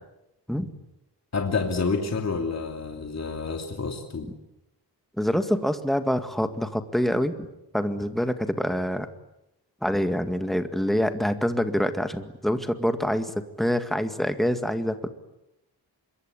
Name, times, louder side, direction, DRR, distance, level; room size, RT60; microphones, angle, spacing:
voice 1, 1.3-4.3, left 4 dB, 40° left, 3 dB, 2.9 m, -28 dB
voice 2, 5.2-7.5 7.7-9.1 9.8-15.1, equal, ahead, 8 dB, 1.9 m, -26 dB
26.0 x 23.0 x 9.9 m, 0.88 s
wide cardioid pair, 145°, 41 cm